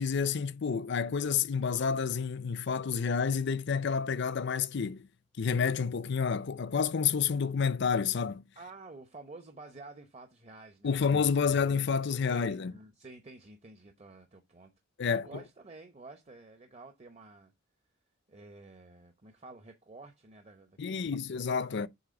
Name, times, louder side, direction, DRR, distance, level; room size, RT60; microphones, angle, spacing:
voice 1, 0.0-5.1 5.4-8.4 10.8-12.7 15.0-15.2 20.8-21.9, left 6 dB, 60° left, 0.5 m, -29 dB
voice 2, 8.6-11.0 11.3-11.5 12.3-14.7 15.0-17.5 18.3-21.1, right 3 dB, 35° right, 0.9 m, -50 dB
8.0 x 3.2 x 5.2 m
head